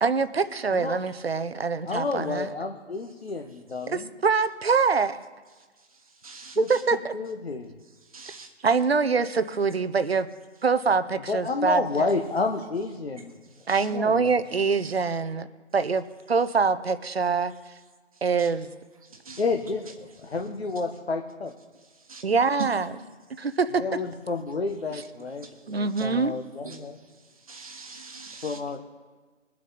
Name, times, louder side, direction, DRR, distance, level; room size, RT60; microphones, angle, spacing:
voice 1, 0.0-2.5 3.9-5.2 6.7-7.1 8.6-10.3 10.6-12.1 13.7-15.5 15.7-17.5 18.2-18.7 22.2-22.9 23.4-23.8 25.7-26.3, right 5 dB, 55° right, 12 dB, 0.8 m, -24 dB
voice 2, 1.8-4.1 6.5-6.7 7.1-7.7 11.3-13.3 13.8-14.4 19.4-21.5 23.8-27.0 28.4-28.8, left 4 dB, 55° left, 4 dB, 1.3 m, -30 dB
voice 3, 6.2-6.6 8.1-8.5 13.7-13.8 18.4-18.5 19.3-19.4 22.1-22.2 26.6-26.8 27.5-28.6, right 4 dB, 30° right, 3 dB, 1.4 m, -43 dB
22.5 x 7.5 x 4.2 m, 1.4 s
figure-of-eight pair, 165°, 37 cm